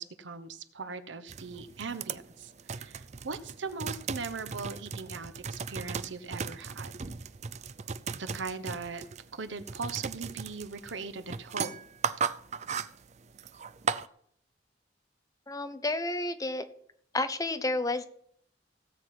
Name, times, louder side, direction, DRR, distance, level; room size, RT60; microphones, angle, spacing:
voice 1, 0.0-6.9 8.1-9.0 9.3-11.8, right 4 dB, 90° right, 11 dB, 1.0 m, -39 dB
sound 1, 1.3-14.1, right 6 dB, 40° right, 0.5 m, -37 dB
voice 2, 15.5-16.7 17.1-18.1, left 2 dB, 20° left, 10 dB, 0.8 m, -31 dB
16.5 x 7.6 x 5.9 m, 0.66 s
head